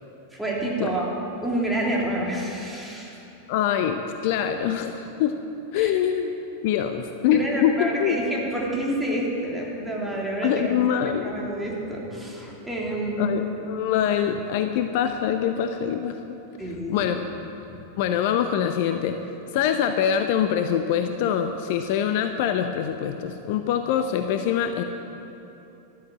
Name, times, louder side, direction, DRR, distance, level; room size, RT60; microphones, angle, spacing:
voice 1, 0.3-1.0 1.4-3.2 5.8-5.9 7.3-10.7 11.2-13.4 16.6-17.1, right 1 dB, 5° right, -4 dB, 3.3 m, -28 dB
voice 2, 3.5-5.3 5.7-6.3 6.6-8.2 10.4-11.3 13.2-16.4 16.9-17.3 18.0-19.2 19.5-24.8, left 9 dB, 50° left, 7 dB, 0.8 m, -24 dB
13.5 x 12.5 x 7.7 m, 3.0 s
figure-of-eight pair, 90°, 0 cm